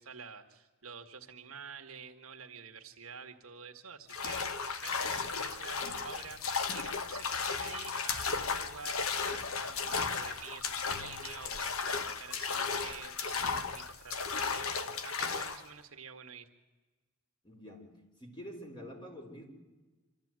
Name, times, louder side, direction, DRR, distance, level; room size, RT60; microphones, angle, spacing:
voice 1, 0.0-6.4 6.7-16.5, right 6 dB, 85° right, 5 dB, 1.8 m, -48 dB
sound 1, 4.1-15.7, left 5 dB, 80° left, 1.2 m, -35 dB
voice 2, 17.4-17.9 18.2-19.5, equal, 20° left, 1 dB, 4.2 m, -47 dB
25.5 x 14.0 x 9.0 m, 1.2 s
head